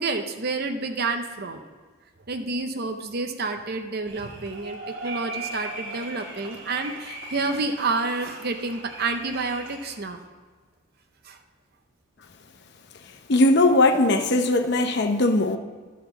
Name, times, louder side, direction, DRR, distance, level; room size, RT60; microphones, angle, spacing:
voice 1, 0.0-1.6 2.3-10.2 11.3-11.4, right 3 dB, 50° right, 6 dB, 0.7 m, -29 dB
sound 1, 4.1-9.9, right 2 dB, 75° right, 2.0 m, -38 dB
voice 2, 13.3-15.6, left 2 dB, 55° left, 6 dB, 0.7 m, -19 dB
11.5 x 4.2 x 6.7 m, 1.5 s
head